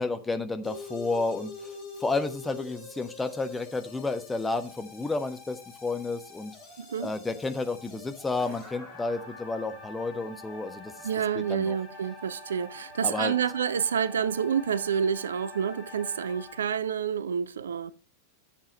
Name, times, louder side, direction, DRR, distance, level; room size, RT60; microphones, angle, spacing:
voice 1, 0.0-1.7 2.0-6.5 7.0-10.9 11.3-11.8 13.0-13.3, left 3 dB, 10° left, 1.2 m, -31 dB
sound 1, 0.6-16.6, left 2 dB, 40° left, 5.7 m, -45 dB
voice 2, 6.8-7.1 11.0-17.9, right 7 dB, 65° right, 0.5 m, -28 dB
10.5 x 7.5 x 4.5 m
figure-of-eight pair, 90°, 0 cm